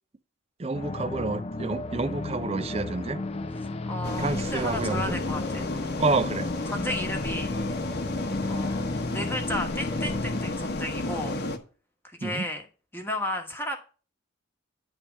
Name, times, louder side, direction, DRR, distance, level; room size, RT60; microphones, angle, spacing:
voice 1, 0.6-3.2 4.2-5.2 6.0-6.5 12.2-12.5, right 3 dB, 30° right, 0.4 m, -29 dB
sound 1, 0.7-10.5, left 2 dB, 30° left, 0.4 m, -33 dB
voice 2, 3.9-5.7 6.7-7.5 8.5-8.8 9.1-11.3 12.0-12.6 12.9-13.8, left 1 dB, 10° left, 1.2 m, -33 dB
sound 2, 4.0-11.6, left 2 dB, 50° left, 1.0 m, -32 dB
9.8 x 3.4 x 7.0 m
head